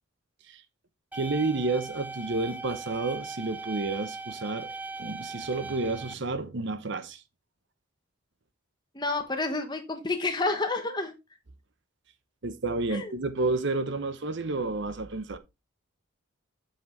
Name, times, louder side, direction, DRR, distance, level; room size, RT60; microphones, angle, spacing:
sound 1, 1.1-6.1, right 3 dB, 5° right, 0.4 m, -39 dB
voice 1, 1.1-4.7 5.0-7.2 12.4-15.4, right 3 dB, 55° right, 0.8 m, -30 dB
voice 2, 8.9-11.1 12.9-13.1, left 3 dB, 20° left, 1.1 m, -29 dB
7.4 x 6.0 x 3.2 m
head